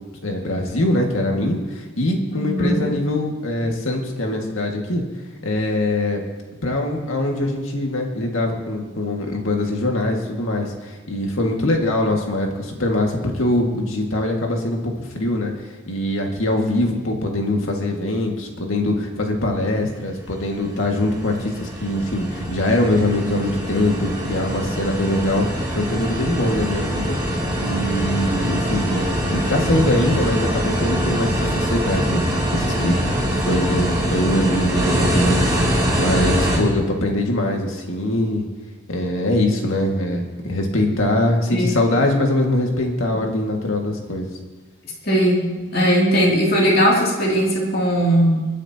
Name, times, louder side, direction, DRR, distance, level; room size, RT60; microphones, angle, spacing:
voice 1, 0.2-5.0 5.4-6.2 6.6-27.2 27.6-32.2 32.5-38.5 38.9-44.3, left 1 dB, 80° left, 1 dB, 2.0 m, -22 dB
voice 2, 2.3-2.8 41.5-41.8 45.0-45.5 45.7-48.5, equal, 50° left, -3 dB, 2.8 m, -18 dB
sound 1, 19.9-36.6, equal, 15° right, 3.2 m, -23 dB
27.5 x 9.9 x 2.9 m, 1.3 s
head